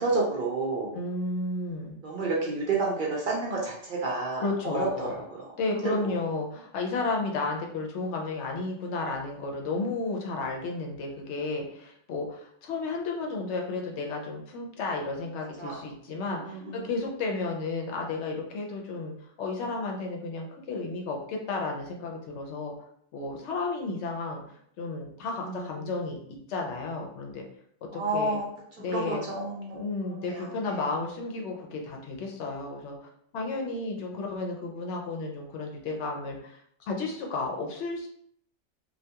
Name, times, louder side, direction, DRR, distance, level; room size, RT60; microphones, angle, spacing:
voice 1, 0.0-0.9 2.0-5.1 5.7-6.1 15.6-15.8 16.2-16.9 25.4-25.7 27.9-28.5 28.9-29.8 30.2-30.9, right 3 dB, 55° right, -3 dB, 0.6 m, -30 dB
voice 2, 0.9-2.0 4.4-5.2 5.6-22.7 23.1-26.2 26.5-27.4 27.9-28.4 28.8-29.2 29.7-38.1, left 3 dB, 75° left, 0 dB, 0.9 m, -33 dB
2.3 x 2.2 x 2.8 m, 0.68 s
omnidirectional pair, 1.2 m